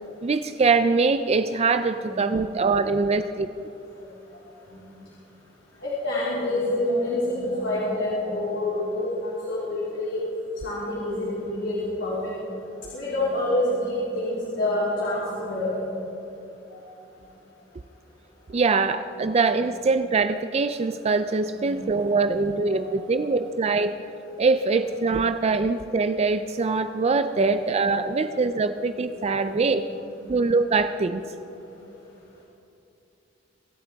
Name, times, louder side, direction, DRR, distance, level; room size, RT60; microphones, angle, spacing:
voice 1, 0.2-3.5 18.5-24.0 24.4-29.8 30.3-31.2, right 4 dB, 35° right, 10 dB, 0.4 m, -23 dB
voice 2, 5.8-10.2 10.6-12.3 12.9-15.8 16.7-16.8 21.5-22.0 22.2-22.4 22.7-22.9 23.2-23.4 24.7-24.8 27.3-27.6 28.2-28.8 29.4-29.6 30.2-30.3, left 1 dB, 75° left, -8 dB, 3.4 m, -28 dB
24.5 x 11.5 x 3.5 m, 2.9 s
head